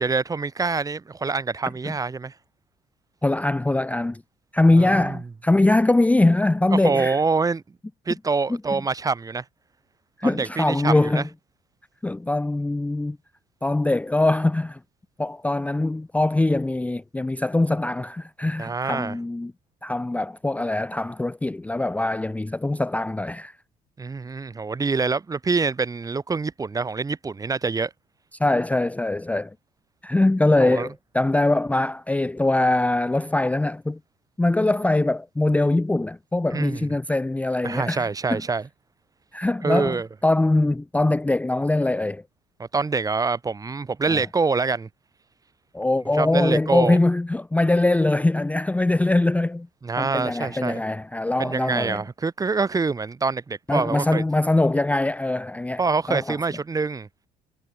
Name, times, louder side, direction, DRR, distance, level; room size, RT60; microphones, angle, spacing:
voice 1, 0.0-2.3 4.7-5.2 6.7-7.6 8.1-9.4 10.2-11.2 18.6-19.2 24.0-27.9 30.6-30.9 36.5-36.8 37.6-38.6 39.6-40.1 42.6-44.9 46.2-47.0 49.8-50.8 51.4-54.2 55.8-57.1, right 4 dB, 20° right, 0.9 m, -25 dB
voice 2, 3.2-4.2 4.5-7.2 8.7-8.8 10.2-11.2 12.0-13.2 13.6-14.8 15.2-19.5 19.8-23.5 28.4-29.5 30.0-34.0 34.4-38.4 39.3-40.0 40.2-42.2 44.1-44.2 45.7-49.7 50.0-52.0 53.7-55.8 56.1-56.4, left 2 dB, 10° left, 0.6 m, -22 dB
cardioid pair, 110°, 17 cm